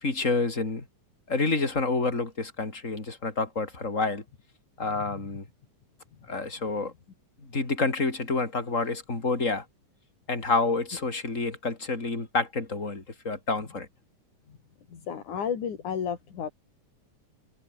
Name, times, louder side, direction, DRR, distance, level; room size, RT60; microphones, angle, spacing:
voice 1, 0.0-0.9 1.3-4.2 4.8-5.5 6.3-6.9 7.4-9.7 10.3-13.9, left 3 dB, 25° left, 4.2 m, -28 dB
voice 2, 14.9-16.5, left 7 dB, 70° left, 4.5 m, -32 dB
omnidirectional pair, 3.6 m